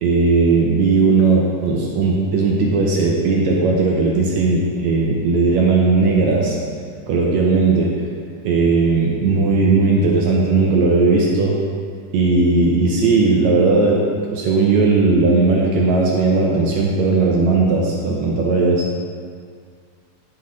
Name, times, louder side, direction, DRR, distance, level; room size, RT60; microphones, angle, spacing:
voice 1, 0.0-6.6 7.1-7.9 8.4-11.6 12.1-14.1 14.3-18.8, right 3 dB, 75° right, -2 dB, 1.8 m, -17 dB
11.0 x 4.3 x 3.7 m, 2.1 s
omnidirectional pair, 3.7 m